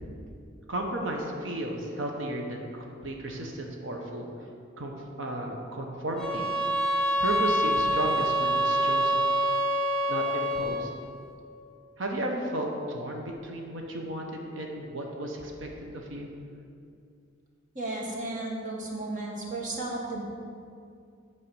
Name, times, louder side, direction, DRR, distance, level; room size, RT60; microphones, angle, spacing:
voice 1, 0.7-2.7 3.0-4.3 4.8-6.5 7.2-9.2 10.1-10.9 12.0-16.3, right 1 dB, 70° right, 1 dB, 1.1 m, -34 dB
sound 1, 6.2-10.9, right 1 dB, 5° left, 1.0 m, -26 dB
voice 2, 17.7-20.2, right 2 dB, 40° right, -2 dB, 1.6 m, -34 dB
8.7 x 4.8 x 7.1 m, 2.4 s
head